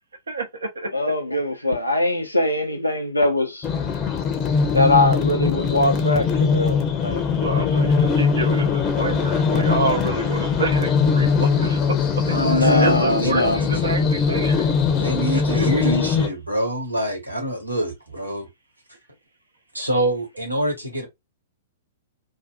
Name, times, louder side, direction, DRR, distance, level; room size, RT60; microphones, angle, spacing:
voice 1, 0.3-0.9 2.6-2.9 3.8-3.9 7.3-14.7 15.3-15.9, right 3 dB, 70° right, 0.6 m, -28 dB
voice 2, 0.9-3.7 4.7-7.2 12.4-13.6 15.8-16.1, left 1 dB, 85° left, 0.4 m, -21 dB
sound 1, 3.6-16.3, left 5 dB, 25° left, 0.6 m, -21 dB
voice 3, 12.3-13.5 15.0-18.5 19.7-21.1, equal, 85° right, 1.0 m, -25 dB
2.5 x 2.4 x 2.3 m
figure-of-eight pair, 105°, 0 cm